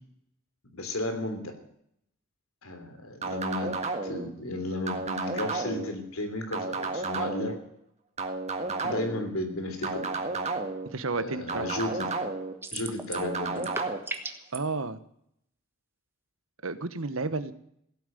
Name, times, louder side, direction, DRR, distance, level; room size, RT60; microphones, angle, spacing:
voice 1, 0.7-1.5 2.6-7.5 8.8-10.1 11.1-12.1 12.7-13.7, left 1 dB, 85° left, 6 dB, 3.3 m, -34 dB
sound 1, 3.2-4.3 4.9-5.9 6.5-7.6 8.2-9.2 9.8-10.9 11.5-12.5 13.1-14.0, right 3 dB, 30° right, 1.6 m, -32 dB
voice 2, 10.8-11.7 14.5-15.0 16.6-17.5, right 3 dB, 80° right, 12 dB, 1.2 m, -31 dB
sound 2, 12.6-13.3 13.6-14.6, right 3 dB, 10° right, 1.3 m, -36 dB
16.0 x 9.0 x 9.2 m, 0.72 s
head